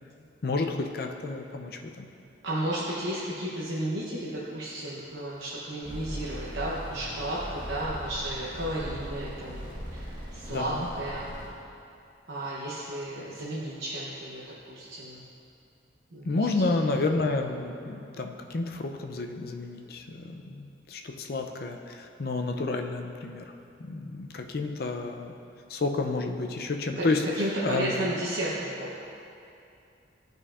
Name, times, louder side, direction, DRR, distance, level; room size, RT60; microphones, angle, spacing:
voice 1, 0.4-2.1 10.5-10.9 16.2-23.5 23.8-25.3 25.7-27.3 27.6-27.9, left 3 dB, 50° left, 4 dB, 0.4 m, -30 dB
voice 2, 2.4-9.7 9.9-11.3 12.3-15.2 16.1-16.7 27.0-29.0, right 1 dB, 75° right, -7 dB, 0.9 m, -33 dB
sound 1, 5.8-11.5, equal, 25° right, 1.3 m, -39 dB
11.0 x 5.2 x 2.4 m, 2.7 s
head